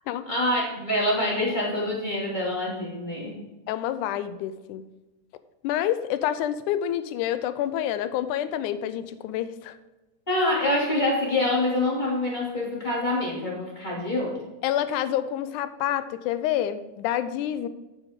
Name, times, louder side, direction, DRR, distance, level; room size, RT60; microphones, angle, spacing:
voice 1, 0.3-3.3 10.3-14.4, left 1 dB, 15° left, -4 dB, 2.5 m, -26 dB
voice 2, 3.7-4.9 5.6-9.8 14.6-17.7, left 11 dB, 80° left, 12 dB, 2.0 m, -28 dB
9.1 x 9.0 x 3.7 m, 1.1 s
omnidirectional pair, 3.7 m